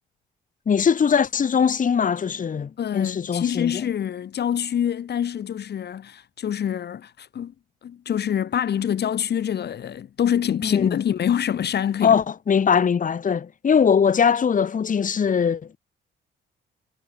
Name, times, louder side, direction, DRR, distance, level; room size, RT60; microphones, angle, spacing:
voice 1, 0.7-3.8 10.6-11.0 12.0-15.8, left 7 dB, 40° left, 1.9 m, -21 dB
voice 2, 2.8-7.5 7.8-12.2, left 9 dB, 55° left, 1.9 m, -26 dB
cardioid pair, 90°, 20 cm